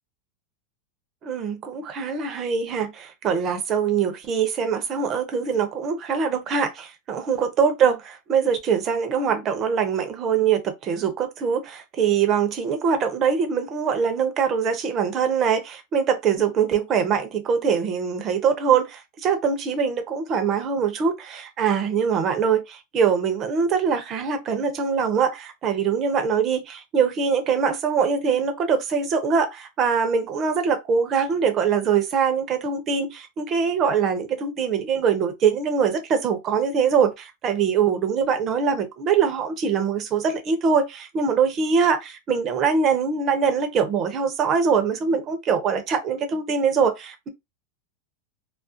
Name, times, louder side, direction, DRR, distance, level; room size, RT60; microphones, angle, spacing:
voice 1, 1.2-47.3, right 6 dB, 35° right, 0.6 m, -23 dB
2.4 x 2.0 x 2.6 m
hypercardioid pair, 115°, 0 cm